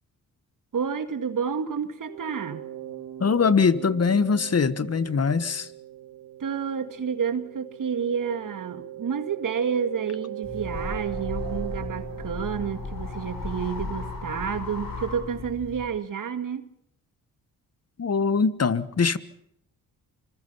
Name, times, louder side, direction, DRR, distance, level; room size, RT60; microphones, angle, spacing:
voice 1, 0.7-2.7 6.4-16.7, right 7 dB, 55° right, 10 dB, 2.0 m, -30 dB
sound 1, 2.1-13.7, right 12 dB, 80° right, 4.6 m, -40 dB
voice 2, 3.2-5.7 18.0-19.2, left 5 dB, 40° left, 16 dB, 1.4 m, -22 dB
sound 2, 10.4-15.8, left 3 dB, 60° left, 7.1 m, -35 dB
26.0 x 21.0 x 5.6 m, 0.74 s
supercardioid pair, 55°, 38 cm